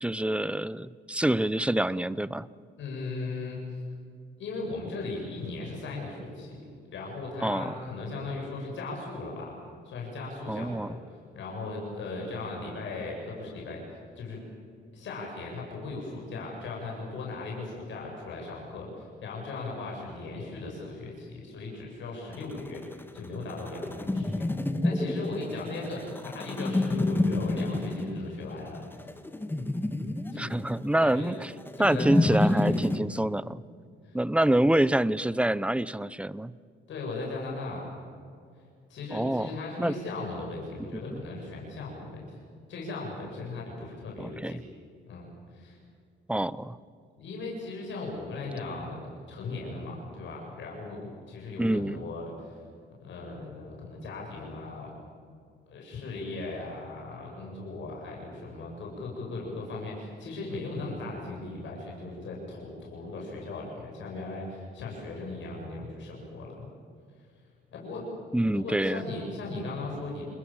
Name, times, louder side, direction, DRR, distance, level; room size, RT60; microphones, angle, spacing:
voice 1, 0.0-2.5 7.4-7.8 10.5-10.9 30.4-31.5 31.8-33.6 34.1-36.5 39.1-39.9 41.1-41.2 44.2-44.6 46.3-46.8 51.6-52.0 68.3-69.0, right 1 dB, 5° right, 18 dB, 0.7 m, -26 dB
voice 2, 2.8-3.6 4.4-6.6 6.9-9.5 9.8-14.4 14.9-22.8 23.1-24.5 24.8-29.2 30.3-30.6 31.0-31.3 31.8-32.8 34.0-34.2 36.9-37.9 38.9-42.3 42.7-44.6 45.1-45.8 47.1-52.6 53.0-54.9 55.7-66.7 67.7-68.1 68.5-70.3, left 3 dB, 70° left, -2 dB, 7.8 m, -38 dB
sound 1, 22.3-33.0, left 2 dB, 10° left, 1.6 m, -29 dB
29.0 x 21.5 x 7.3 m, 2.3 s
cardioid pair, 90°, 20 cm